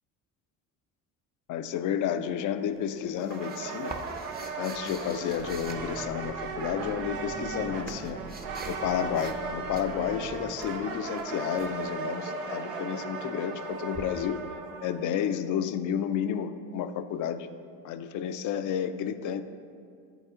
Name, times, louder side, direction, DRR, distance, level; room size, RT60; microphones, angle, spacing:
voice 1, 1.5-3.9 4.6-8.2 8.7-14.4 14.8-17.5 17.8-19.4, left 9 dB, 50° left, 11 dB, 0.4 m, -31 dB
sound 1, 2.8-6.6 7.3-8.9 9.1-9.5 9.7-11.7 13.9-14.0, right 3 dB, 25° right, 0.7 m, -45 dB
sound 2, 3.3-15.1, right 4 dB, 85° right, 0.7 m, -37 dB
sound 3, 5.3-10.5, right 3 dB, 65° right, 1.3 m, -44 dB
8.1 x 4.1 x 3.6 m, 2.2 s
hypercardioid pair, 65°, 40 cm